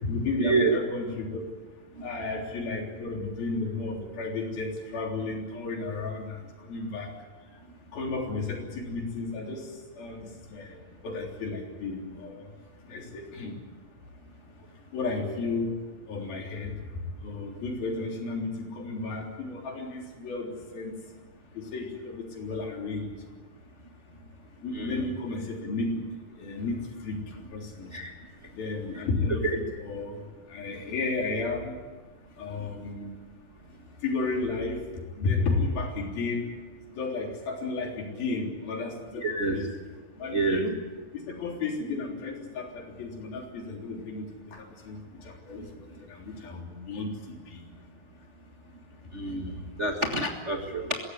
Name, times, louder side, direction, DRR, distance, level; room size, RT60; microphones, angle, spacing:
voice 1, 0.0-1.4 2.0-6.4 6.7-7.1 7.9-9.7 10.0-10.2 10.5-12.5 12.9-13.6 14.9-15.8 16.1-16.7 17.2-20.9 21.5-23.1 24.6-26.0 26.4-27.2 27.5-27.9 28.5-30.2 30.5-31.8 32.4-33.2 34.0-34.8 35.2-36.5 36.9-39.7 40.2-40.7 41.1-45.0 45.3-47.1 47.5-47.6, left 3 dB, 85° left, 0 dB, 5.6 m, -33 dB
voice 2, 39.2-39.6 40.3-40.6 45.6-45.7 49.1-51.0, right 2 dB, 35° right, 1 dB, 1.1 m, -28 dB
22.5 x 16.5 x 9.7 m, 1.3 s
omnidirectional pair, 4.1 m